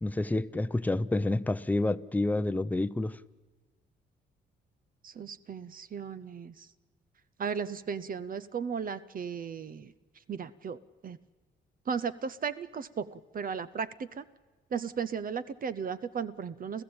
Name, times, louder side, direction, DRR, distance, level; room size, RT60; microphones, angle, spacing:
voice 1, 0.0-3.2, left 2 dB, 10° left, 13 dB, 0.7 m, -29 dB
voice 2, 5.0-6.7 7.4-9.9 10.3-11.2 11.9-14.2 14.7-16.8, right 6 dB, 45° right, 16 dB, 0.8 m, -36 dB
29.5 x 14.5 x 8.8 m, 1.4 s
cardioid pair, 90°, 20 cm